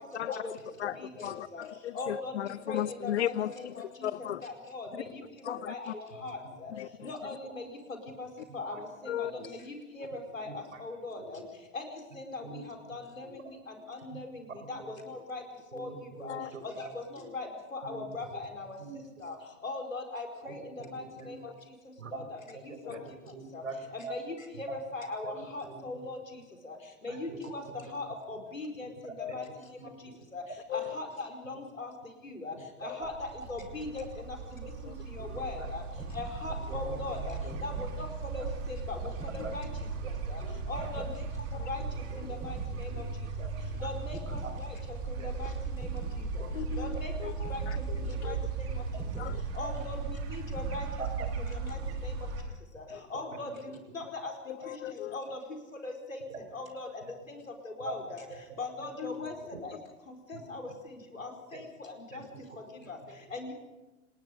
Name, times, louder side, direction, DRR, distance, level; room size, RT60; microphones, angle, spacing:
voice 1, 0.1-3.7 4.0-4.5 5.4-5.9 6.7-7.1 9.1-9.3 16.3-16.5 22.8-23.1 29.2-29.4 30.7-31.0 32.9-33.0 34.0-34.1 34.8-34.9 39.4-39.5 41.5-41.7 46.5-46.9 47.2-47.8 48.2-48.4 49.2-49.4 52.9-53.0 54.5-55.2 59.0-59.3, left 12 dB, 60° left, 20 dB, 0.7 m, -36 dB
voice 2, 1.0-1.6 1.9-2.3 2.7-4.1 4.4-5.2 5.7-6.7 7.0-7.7 8.2-8.3 8.5-11.4 11.7-12.5 12.9-15.4 15.7-15.9 16.2-16.4 16.6-18.8 19.2-19.4 19.6-21.4 22.1-22.4 23.5-23.6 23.9-26.2 26.6-26.8 27.0-27.6 27.9-28.9 29.3-29.5 30.3-30.4 30.7-31.9 32.2-32.5 32.8-35.8 36.1-39.7 40.3-40.4 40.7-41.2 41.7-41.8 42.1-42.9 43.8-44.7 45.1-45.5 45.8-46.0 46.8-47.1 47.5-47.6 47.9-48.8 49.2-49.3 49.5-50.9 51.2-51.3 51.6-52.1 52.7-52.8 53.1-54.3 54.7-55.4 55.8-56.2 56.5-57.0 57.3-58.2 58.6-59.3 59.6-59.8 60.1-62.2 62.9-63.0 63.3-63.5, left 2 dB, 80° left, 3 dB, 4.9 m, -40 dB
voice 3, 6.1-6.5 7.4-7.5 8.7-8.8 9.3-9.5 10.4-10.8 12.4-12.6 12.9-13.0 14.6-14.9 15.7-17.3 17.8-19.0 20.4-21.3 22.0-22.2 22.9-23.8 24.0-24.1 24.5-24.8 25.2-25.8 27.1-27.9 29.3-29.4 29.8-29.9 30.8-30.9 31.4-31.6 32.5-33.1 34.6-34.7 35.2-35.7 36.6-37.6 38.4-38.5 39.4-39.5 40.0-40.1 40.4-41.1 42.1-42.4 42.9-43.0 43.4-43.5 43.8-43.9 44.3-44.5 45.2-45.3 46.4-46.5 46.9-47.0 47.8-48.2 49.6-49.7 51.0-51.1 53.1-53.7 54.6-54.7 56.3-56.4 57.0-57.1 57.9-58.0 58.3-58.4 58.8-59.5 60.3-60.8 61.5-61.6 62.1-63.1, right 4 dB, 70° right, 7 dB, 4.8 m, -46 dB
sound 1, 33.0-52.4, right 4 dB, 40° right, 7.9 m, -37 dB
sound 2, 35.9-36.4 37.3-38.0 39.2-39.6 40.7-41.2 42.4-42.8 44.1-44.5 45.8-46.2 47.4-47.8 49.0-49.4 50.5-51.0, equal, 5° right, 7.1 m, -46 dB
29.0 x 20.0 x 5.3 m, 1.1 s
figure-of-eight pair, 90°, 39 cm